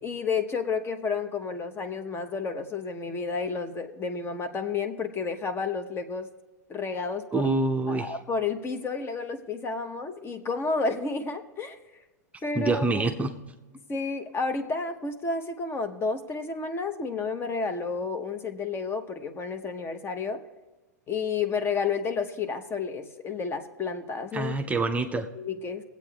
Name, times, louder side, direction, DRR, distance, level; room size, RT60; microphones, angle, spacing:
voice 1, 0.0-6.3 6.7-7.5 7.9-11.8 12.4-13.1 13.9-20.4 21.1-24.5 25.1-25.8, left 4 dB, 25° left, 8 dB, 0.9 m, -31 dB
voice 2, 7.3-8.1 12.6-13.4 24.3-25.2, right 3 dB, 15° right, 4 dB, 0.6 m, -26 dB
23.5 x 8.2 x 2.3 m, 1.2 s
hypercardioid pair, 100°, 9 cm